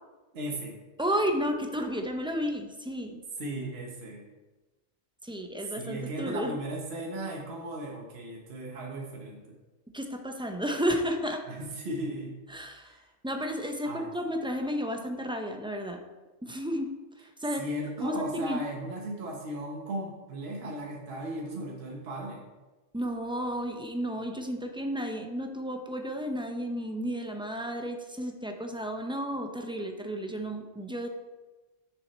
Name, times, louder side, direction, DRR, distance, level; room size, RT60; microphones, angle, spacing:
voice 1, 0.3-0.8 3.4-4.2 5.7-9.6 11.5-12.4 12.8-13.0 13.8-14.1 17.6-22.4, right 1 dB, 65° right, -1 dB, 1.4 m, -36 dB
voice 2, 1.0-3.2 5.2-6.6 9.9-11.4 12.5-12.9 13.2-16.0 16.4-17.7 18.0-18.6 22.9-31.1, equal, 5° right, 4 dB, 0.4 m, -32 dB
7.0 x 6.1 x 4.2 m, 1.2 s
omnidirectional pair, 1.2 m